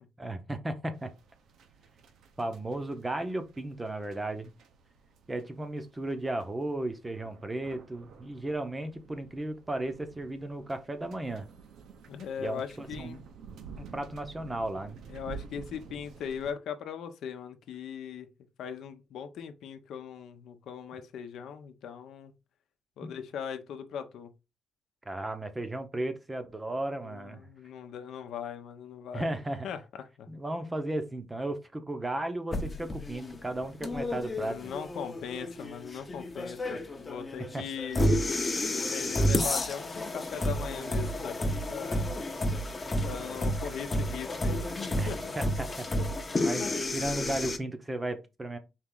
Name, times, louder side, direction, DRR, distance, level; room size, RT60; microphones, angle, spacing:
voice 1, 0.2-1.1 2.4-4.5 5.3-11.5 12.4-13.2 13.8-15.0 25.1-27.4 29.1-29.7 30.3-34.6 37.5-37.6 44.9-45.9 46.4-48.6, right 1 dB, 15° right, 0.7 m, -35 dB
sound 1, 0.9-16.5, right 6 dB, 75° right, 0.8 m, -51 dB
voice 2, 12.1-13.2 15.1-18.3 18.6-22.3 23.0-24.3 27.0-29.3 29.6-29.8 30.2-30.3 34.3-38.2 38.7-42.1 43.0-44.7 45.1-45.3, left 8 dB, 75° left, 0.7 m, -39 dB
sound 2, 32.5-47.6, left 1 dB, 25° left, 0.7 m, -31 dB
4.4 x 3.1 x 3.8 m
cardioid pair, 125°, 0 cm